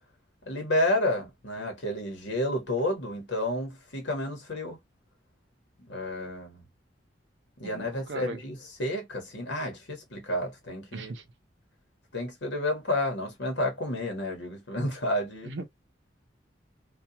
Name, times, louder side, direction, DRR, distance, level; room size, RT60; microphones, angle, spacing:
voice 1, 0.4-4.8 5.8-6.6 7.6-11.1 12.1-15.5, left 1 dB, 75° left, 1.2 m, -30 dB
voice 2, 7.6-8.4 10.9-11.2 15.4-15.7, right 3 dB, 70° right, 0.6 m, -38 dB
2.3 x 2.3 x 2.8 m
head